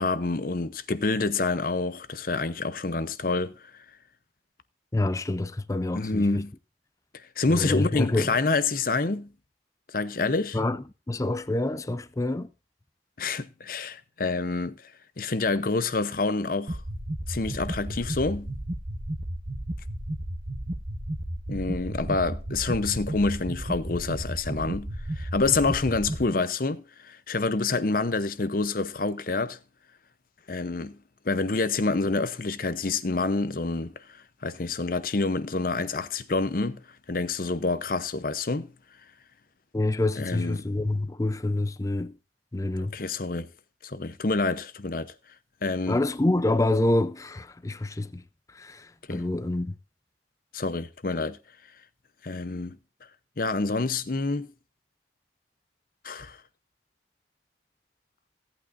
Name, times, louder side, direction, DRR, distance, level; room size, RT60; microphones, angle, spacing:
voice 1, 0.0-3.7 5.9-6.5 7.4-9.3 9.9-10.6 13.2-14.9 15.2-16.8 17.3-18.5 21.5-24.9 25.2-29.6 30.5-31.0 31.2-38.7 40.2-40.7 42.9-43.5 43.8-45.1 45.6-46.0 49.1-49.2 50.5-51.4 52.2-52.8 53.4-54.5 56.0-56.4, left 3 dB, 55° left, 0.8 m, -27 dB
voice 2, 4.9-6.4 7.5-8.4 10.5-12.5 39.7-42.1 42.5-43.0 45.9-48.2 48.5-49.8, left 2 dB, 20° left, 0.5 m, -27 dB
sound 1, 16.7-26.2, right 1 dB, 40° right, 1.1 m, -33 dB
17.0 x 8.7 x 2.6 m
head